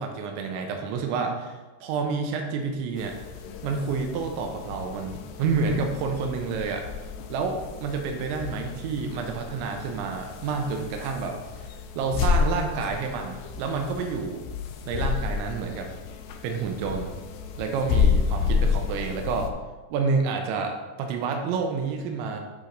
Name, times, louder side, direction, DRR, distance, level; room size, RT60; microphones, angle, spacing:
voice 1, 0.0-3.2 3.6-6.9 7.3-11.4 12.0-14.5 14.9-15.9 16.4-17.1 17.6-19.5 19.9-22.4, right 5 dB, 90° right, 3 dB, 3.0 m, -29 dB
sound 1, 3.0-19.5, left 6 dB, 85° left, 2.4 m, -30 dB
11.0 x 3.8 x 3.3 m, 1.2 s
omnidirectional pair, 5.3 m